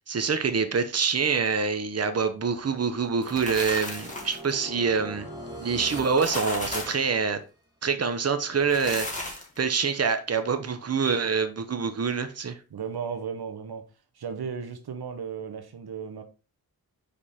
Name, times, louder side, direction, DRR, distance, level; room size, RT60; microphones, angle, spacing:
voice 1, 0.1-5.3 5.6-7.4 7.8-12.6, right 5 dB, 40° right, 0.9 m, -26 dB
sound 1, 2.3-7.4, equal, 10° right, 2.9 m, -43 dB
sound 2, 3.0-4.5 6.0-7.1 8.6-9.6, left 2 dB, 20° left, 2.7 m, -34 dB
voice 2, 12.7-13.9 14.1-16.2, right 6 dB, 80° right, 1.0 m, -35 dB
5.3 x 5.1 x 4.2 m
cardioid pair, 65°, 38 cm